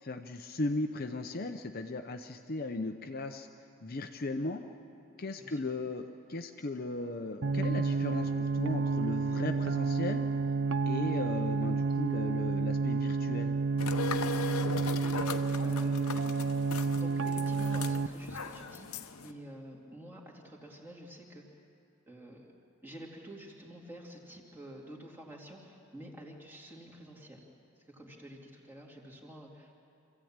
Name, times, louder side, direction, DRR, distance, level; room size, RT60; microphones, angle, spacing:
voice 1, 0.0-3.5 3.8-4.6 5.2-10.2 10.9-13.5, left 2 dB, 40° left, 5 dB, 0.7 m, -36 dB
voice 2, 5.4-5.7 15.0-16.3 16.9-21.4 22.1-22.5 22.8-27.4 27.9-29.7, right 1 dB, 10° right, -3 dB, 2.7 m, -49 dB
sound 1, 7.4-18.1, right 4 dB, 60° right, 0.6 m, -30 dB
sound 2, 13.8-19.3, left 3 dB, 80° left, 0.9 m, -38 dB
26.0 x 15.0 x 8.8 m, 2.6 s
head